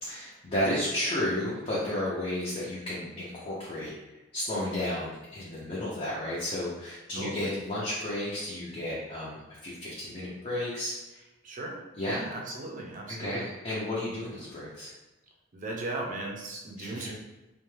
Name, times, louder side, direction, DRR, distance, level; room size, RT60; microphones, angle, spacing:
voice 1, 0.0-3.9 4.3-11.2 12.0-12.2 13.1-14.9 16.8-17.1, left 1 dB, 35° left, -8 dB, 0.6 m, -33 dB
voice 2, 7.1-7.5 11.4-13.5 15.5-17.1, right 2 dB, 45° right, -1 dB, 0.5 m, -37 dB
2.4 x 2.2 x 3.1 m, 1.1 s
head